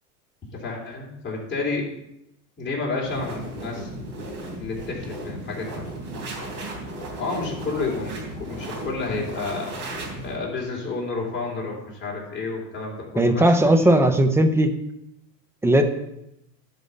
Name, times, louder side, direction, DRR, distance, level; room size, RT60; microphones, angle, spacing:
voice 1, 0.5-1.9 2.6-4.3 4.6-5.8 7.2-9.8 10.2-14.0, left 3 dB, 20° left, -3 dB, 3.4 m, -30 dB
sound 1, 3.0-10.4, right 1 dB, 35° right, 3.3 m, -35 dB
voice 2, 13.2-14.7 15.6-15.8, right 1 dB, 5° right, 7 dB, 0.5 m, -17 dB
11.0 x 5.4 x 5.5 m, 0.83 s
hypercardioid pair, 110°, 50 cm